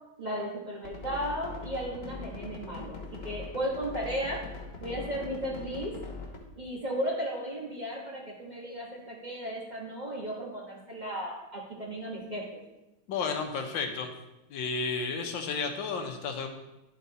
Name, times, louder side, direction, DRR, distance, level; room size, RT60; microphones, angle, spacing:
voice 1, 0.2-4.4 4.8-6.0 6.6-12.6, equal, 25° right, -4 dB, 1.2 m, -35 dB
sound 1, 0.8-6.4, left 4 dB, 35° left, 1.2 m, -41 dB
voice 2, 13.1-14.1 14.5-16.5, left 4 dB, 75° left, 4 dB, 1.5 m, -32 dB
11.0 x 4.6 x 4.0 m, 0.97 s
omnidirectional pair, 2.1 m